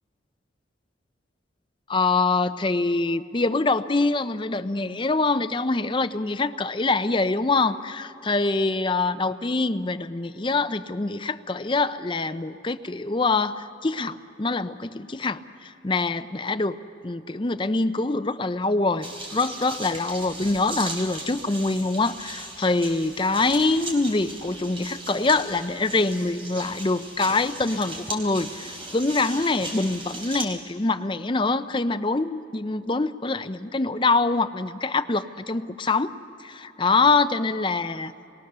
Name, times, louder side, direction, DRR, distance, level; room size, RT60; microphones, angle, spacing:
voice 1, 1.9-16.8 17.0-36.1 36.4-38.1, left 3 dB, 25° left, 11 dB, 0.5 m, -24 dB
sound 1, 19.0-30.4, right 2 dB, 25° right, 3.6 m, -37 dB
28.5 x 21.5 x 6.7 m, 2.7 s
head